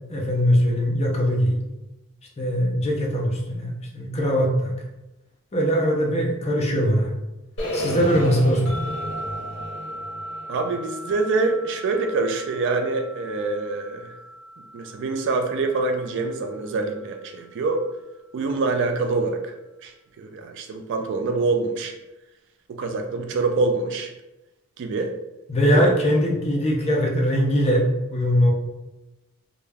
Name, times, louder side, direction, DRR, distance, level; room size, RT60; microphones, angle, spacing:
voice 1, 0.1-1.6 2.4-4.7 5.5-7.1 7.7-8.6 25.5-27.8 28.1-28.5, equal, 30° left, -1 dB, 0.5 m, -21 dB
sound 1, 7.6-11.6, equal, 60° left, 0.8 m, -31 dB
sound 2, 8.7-17.9, equal, 75° right, 0.8 m, -39 dB
voice 2, 10.5-14.1 14.7-17.8 18.3-19.5 19.8-21.9 22.7-24.1 24.8-25.1 25.6-26.0, right 3 dB, 55° right, 5 dB, 0.3 m, -25 dB
2.3 x 2.2 x 3.3 m, 0.98 s
head